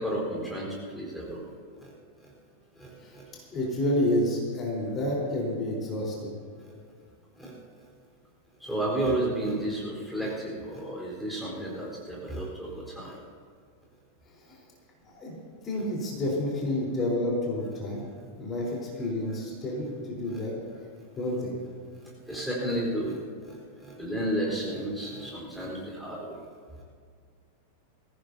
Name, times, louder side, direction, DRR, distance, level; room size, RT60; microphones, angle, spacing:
voice 1, 0.0-1.5 1.8-1.9 2.8-3.3 7.4-7.6 8.6-13.2 20.3-20.4 21.9-23.2 23.5-26.4, right 1 dB, 5° left, -4 dB, 4.2 m, -32 dB
voice 2, 3.0-6.3 14.3-14.6 15.1-15.3 15.6-18.0 18.4-20.5 21.2-21.5, left 1 dB, 25° left, -3 dB, 4.1 m, -29 dB
22.0 x 16.0 x 2.8 m, 2.1 s
figure-of-eight pair, 90°, 0 cm